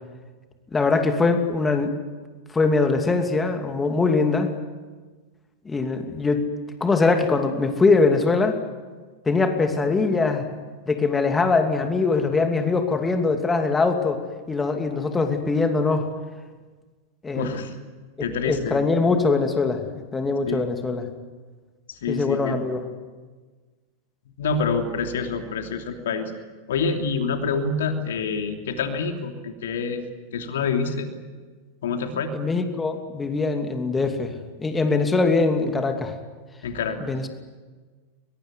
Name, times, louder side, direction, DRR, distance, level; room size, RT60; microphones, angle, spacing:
voice 1, 0.7-1.9 2.5-4.5 5.6-6.4 6.8-8.6 9.3-10.5 10.9-14.2 14.5-16.1 17.2-17.6 18.4-21.1 22.1-22.8 32.3-34.3 34.6-36.1 37.0-37.3, left 3 dB, 15° left, 6 dB, 2.7 m, -22 dB
voice 2, 17.3-17.7 18.2-18.8 20.5-20.7 21.9-22.6 24.4-26.3 26.7-30.0 30.3-31.1 31.8-32.3 36.6-37.0, left 4 dB, 60° left, 5 dB, 3.0 m, -27 dB
22.5 x 22.5 x 9.7 m, 1.4 s
figure-of-eight pair, 90°, 0 cm